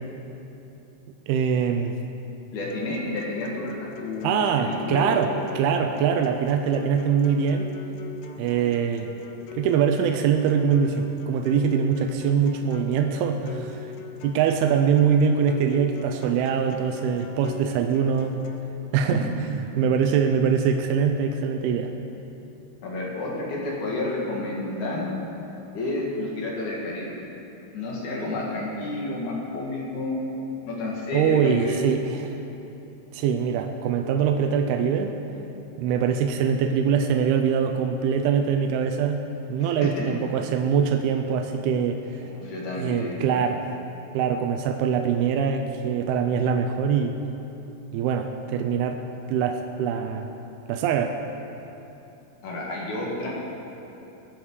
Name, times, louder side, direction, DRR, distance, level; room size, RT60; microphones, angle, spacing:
voice 1, 1.3-2.0 4.2-5.3 5.6-7.7 8.4-9.1 9.6-13.8 14.2-18.3 18.9-21.9 31.1-32.4 33.1-35.2 35.8-39.2 39.5-42.0 42.7-43.6 44.1-47.2 47.9-49.0 49.3-50.3 50.7-51.2, right 7 dB, 80° right, 4 dB, 2.5 m, -23 dB
voice 2, 2.5-3.7 4.0-5.3 19.1-19.2 22.8-25.1 25.7-27.1 27.7-30.3 30.7-31.8 39.6-40.1 42.2-43.2 52.4-53.3, left 2 dB, 55° left, -4 dB, 3.1 m, -30 dB
sound 1, 2.7-18.7, left 5 dB, 80° left, 1.8 m, -43 dB
20.5 x 7.4 x 4.8 m, 3.0 s
omnidirectional pair, 4.6 m